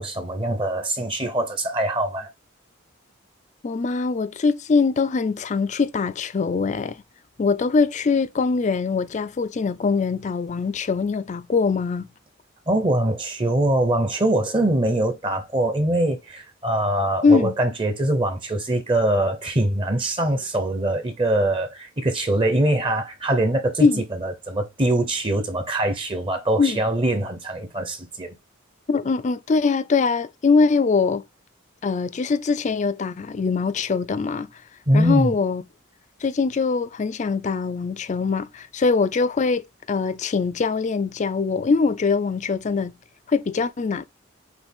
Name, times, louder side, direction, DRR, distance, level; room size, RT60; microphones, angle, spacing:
voice 1, 0.0-2.3 12.7-23.9 24.2-28.3 34.9-35.3, right 1 dB, 25° right, 0.7 m, -23 dB
voice 2, 3.6-7.0 7.4-12.1 17.2-17.5 23.8-24.0 26.6-26.8 28.9-31.2 31.8-34.5 34.9-35.6 36.2-42.9 43.3-44.0, left 4 dB, 35° left, 0.4 m, -22 dB
6.1 x 2.4 x 3.5 m
head